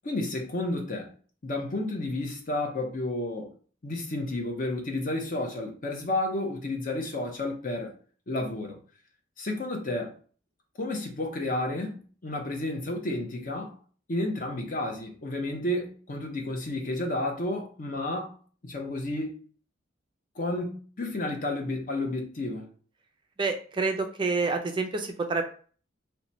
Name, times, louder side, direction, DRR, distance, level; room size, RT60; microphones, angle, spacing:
voice 1, 0.0-1.1 1.4-3.5 3.8-7.9 8.3-8.8 9.4-10.2 10.8-13.8 14.1-18.4 18.6-19.4 20.4-22.7, left 2 dB, 45° left, 0.7 m, -31 dB
voice 2, 23.4-25.4, right 3 dB, 25° right, 0.4 m, -28 dB
3.0 x 2.2 x 3.9 m
head